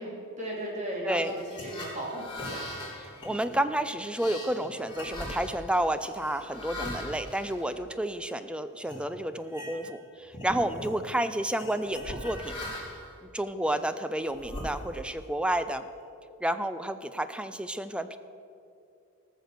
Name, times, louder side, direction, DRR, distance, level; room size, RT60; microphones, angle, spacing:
voice 1, 0.0-2.7, right 1 dB, 30° right, -2 dB, 2.9 m, -36 dB
sound 1, 1.3-8.3 8.8-9.0 9.4-10.0 10.3-11.0 11.6-13.1 13.7-15.2, left 1 dB, 20° left, 3.8 m, -40 dB
voice 2, 3.2-12.6 13.2-15.8 16.4-18.2, right 1 dB, 5° right, 11 dB, 0.4 m, -30 dB
18.5 x 6.5 x 6.7 m, 2.6 s
head